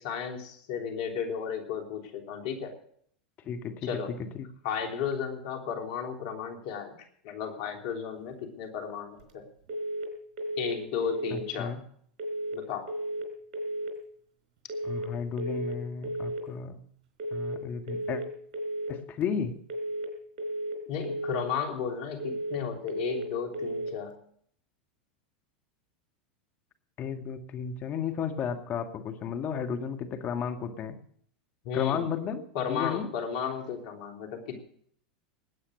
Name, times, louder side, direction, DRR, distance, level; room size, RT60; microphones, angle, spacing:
voice 1, 0.0-2.7 3.8-4.1 4.6-7.0 7.2-9.4 10.6-11.7 12.5-12.9 20.9-24.2 31.7-32.1 32.6-34.6, left 7 dB, 60° left, 3 dB, 3.3 m, -34 dB
voice 2, 3.4-4.5 11.3-11.8 14.8-16.8 17.3-18.2 18.9-19.6 27.0-31.0 31.7-33.1, left 7 dB, 40° left, 7 dB, 1.7 m, -33 dB
sound 1, 9.7-10.1 10.4-10.8 11.0-11.4 12.2-12.6 12.9-13.3 13.5-13.9 14.7-15.1 15.4-15.8 16.0-16.4 17.2-17.6 17.9-18.3 18.5-18.9 19.7-20.1 20.4-20.8 21.0-21.4 22.2-22.6 22.9-23.3 23.5-23.9, right 1 dB, 55° right, 4.2 m, -33 dB
19.5 x 8.8 x 6.5 m, 0.62 s
hypercardioid pair, 95°, 5 cm